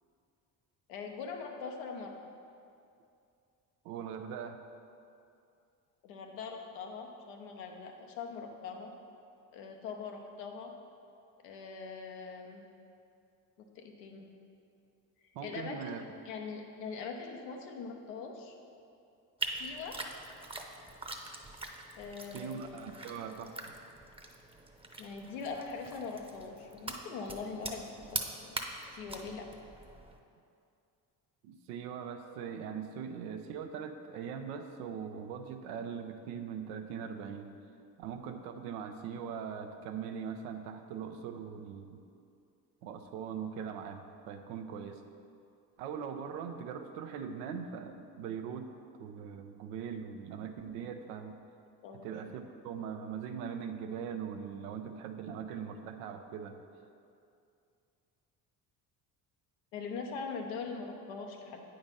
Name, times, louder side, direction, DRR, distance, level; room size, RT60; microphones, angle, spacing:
voice 1, 0.9-2.1 6.0-8.9 9.5-10.7 11.4-12.6 13.7-14.3 15.4-16.0 16.3-18.5 19.6-20.0 22.0-22.8 25.0-28.6 28.9-29.5 51.8-52.1 59.7-61.7, left 5 dB, 85° left, 2 dB, 0.9 m, -42 dB
voice 2, 3.8-4.6 15.3-16.0 22.3-23.7 31.4-37.5 38.0-42.0 42.8-45.0 45.8-48.7 49.0-51.4 52.0-56.6, right 7 dB, 90° right, 6 dB, 0.6 m, -41 dB
sound 1, 19.4-30.2, right 2 dB, 10° right, 0.8 m, -43 dB
8.7 x 3.9 x 5.4 m, 2.5 s
hypercardioid pair, 60°, 46 cm